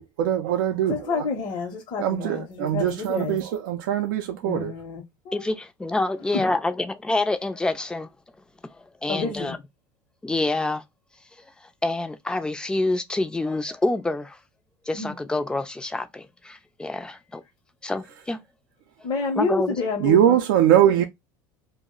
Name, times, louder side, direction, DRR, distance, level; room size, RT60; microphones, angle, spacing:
voice 1, 0.0-1.2 2.0-4.7 20.0-21.0, right 10 dB, 85° right, 0.4 m, -22 dB
voice 2, 0.9-3.4 4.4-5.5 6.3-6.4 9.1-9.6 14.9-15.1 19.0-20.4, left 4 dB, 45° left, 0.7 m, -29 dB
voice 3, 5.3-8.1 9.0-9.6 10.2-10.8 11.8-14.4 14.9-17.4 17.8-18.4 19.4-19.7, left 2 dB, 10° left, 0.4 m, -27 dB
2.3 x 2.0 x 3.6 m
supercardioid pair, 115°, 10 cm